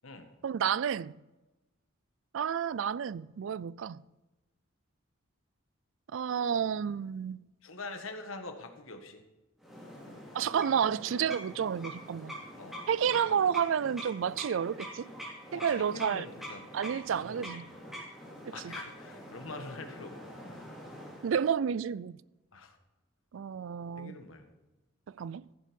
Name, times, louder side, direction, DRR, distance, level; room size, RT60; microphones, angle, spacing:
voice 1, 0.4-1.1 2.3-4.0 6.1-7.4 10.3-12.4 12.9-15.1 15.5-16.2 16.7-17.7 18.6-18.8 21.2-22.2 23.3-24.2 25.2-25.4, right 8 dB, 70° right, 0.4 m, -30 dB
voice 2, 7.6-9.2 12.6-12.9 13.2-13.4 15.5-17.6 18.5-20.4 22.5-22.8 24.0-24.5, left 2 dB, 80° left, 1.6 m, -45 dB
sound 1, 9.6-21.4, equal, ahead, 3.4 m, -45 dB
14.5 x 7.4 x 5.3 m
head